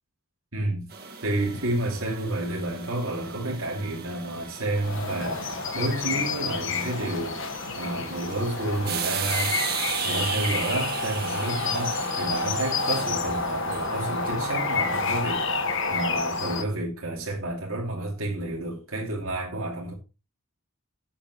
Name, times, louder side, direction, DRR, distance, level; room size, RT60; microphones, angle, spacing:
voice 1, 0.5-0.9 1.2-9.6 10.0-19.9, right 1 dB, 75° right, 2.7 m, -30 dB
sound 1, 0.9-15.4, right 7 dB, 45° right, 1.9 m, -37 dB
sound 2, 4.8-16.6, left 4 dB, 60° left, 1.5 m, -29 dB
13.5 x 8.7 x 3.1 m
head